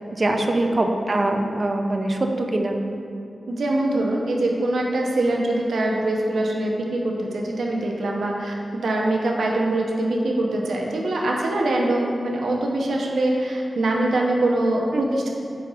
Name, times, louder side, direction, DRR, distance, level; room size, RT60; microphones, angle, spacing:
voice 1, 0.1-2.8 14.9-15.1, right 1 dB, 35° right, 3 dB, 0.5 m, -23 dB
voice 2, 3.5-15.3, right 1 dB, 90° right, -1 dB, 0.7 m, -23 dB
4.8 x 4.2 x 5.5 m, 2.7 s
wide cardioid pair, 130°, 0 cm